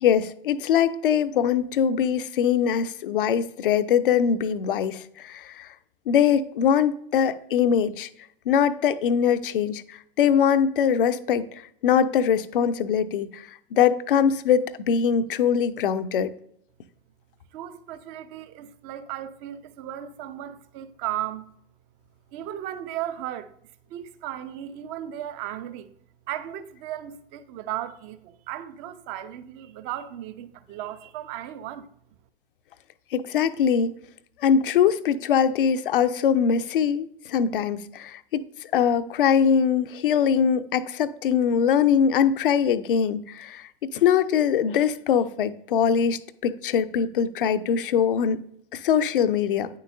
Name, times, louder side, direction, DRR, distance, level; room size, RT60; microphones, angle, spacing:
voice 1, 0.0-5.7 6.1-8.1 8.5-9.8 10.2-11.5 11.8-13.4 13.7-16.3 33.1-33.9 34.4-38.4 38.7-43.6 43.9-48.4 48.7-49.7, left 8 dB, 65° left, 0.5 m, -22 dB
voice 2, 17.5-21.5 22.3-23.5 23.9-25.9 26.3-31.9, right 12 dB, 40° right, 0.6 m, -35 dB
9.4 x 6.7 x 2.6 m
figure-of-eight pair, 85°, 29 cm